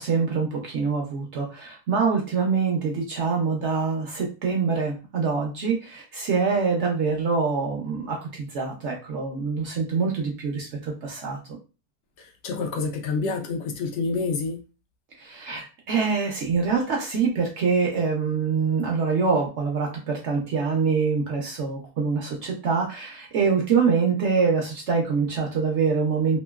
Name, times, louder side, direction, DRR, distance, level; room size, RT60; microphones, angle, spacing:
voice 1, 0.0-11.4 15.2-26.4, right 5 dB, 60° right, 0 dB, 0.8 m, -25 dB
voice 2, 12.2-14.6, left 4 dB, 70° left, 4 dB, 0.7 m, -28 dB
2.9 x 2.6 x 2.2 m, 0.32 s
omnidirectional pair, 1.6 m